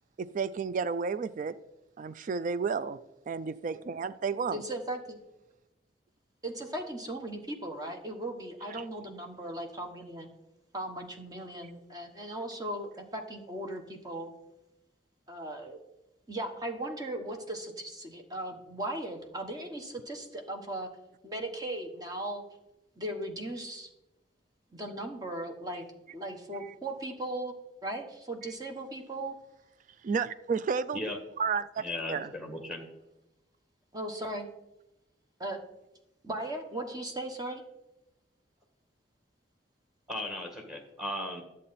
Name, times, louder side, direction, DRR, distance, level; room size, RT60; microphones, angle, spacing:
voice 1, 0.2-1.6 2.0-3.0 3.3-4.6 8.7-8.8 28.4-28.5 30.0-31.0 31.4-32.3, right 5 dB, 45° right, 0.3 m, -32 dB
voice 2, 4.5-5.2 6.4-10.3 10.7-14.3 15.3-15.8 16.3-20.9 21.2-22.4 23.0-23.9 24.7-25.8 26.1-27.5 27.8-29.3 33.9-34.5 35.4-35.6 36.2-37.6, right 1 dB, 20° right, 1.1 m, -37 dB
voice 3, 31.8-32.8 40.1-41.4, left 1 dB, 5° right, 1.7 m, -36 dB
11.5 x 7.6 x 4.1 m
head